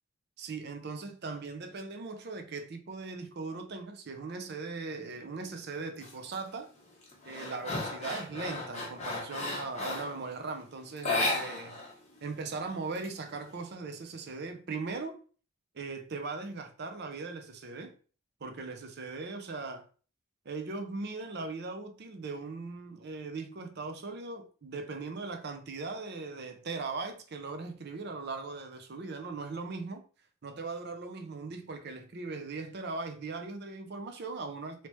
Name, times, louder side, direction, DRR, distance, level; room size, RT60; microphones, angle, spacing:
voice 1, 0.4-6.7 7.2-11.8 12.2-15.2 15.7-17.9 18.4-19.9 20.5-30.0 30.4-34.9, right 3 dB, 50° right, 0.5 m, -39 dB
sound 1, 6.0-6.4 6.8-10.2 11.0-11.9 12.2-12.3 12.7-13.6, left 2 dB, 35° left, 0.9 m, -34 dB
3.2 x 2.8 x 3.0 m
head